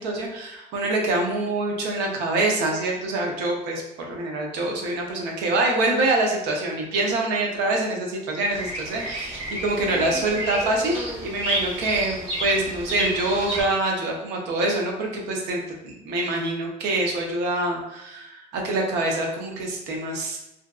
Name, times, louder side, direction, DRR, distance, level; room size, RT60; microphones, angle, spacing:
voice 1, 0.0-10.9 11.2-20.4, right 2 dB, 85° right, 0 dB, 0.6 m, -25 dB
Bird vocalization bird call bird song, 8.5-13.6, right 1 dB, 35° right, 1.2 m, -31 dB
2.6 x 2.3 x 2.3 m, 0.91 s
cardioid pair, 110°, 17 cm